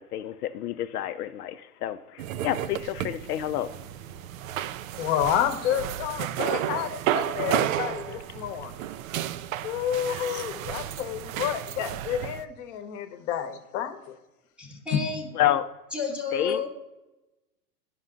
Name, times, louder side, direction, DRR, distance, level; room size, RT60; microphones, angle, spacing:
voice 1, 0.0-3.7 10.1-10.2 15.3-15.7 16.3-16.7, left 12 dB, 70° left, 9 dB, 0.6 m, -29 dB
sound 1, 2.2-12.4, right 12 dB, 60° right, 0.5 m, -32 dB
voice 2, 5.0-8.8 9.6-14.2 14.9-15.0, left 10 dB, 45° left, 9 dB, 1.0 m, -29 dB
voice 3, 14.6-15.3 15.9-16.7, left 4 dB, ahead, -3 dB, 0.8 m, -31 dB
10.5 x 5.5 x 3.7 m, 1.0 s
hypercardioid pair, 125°, 48 cm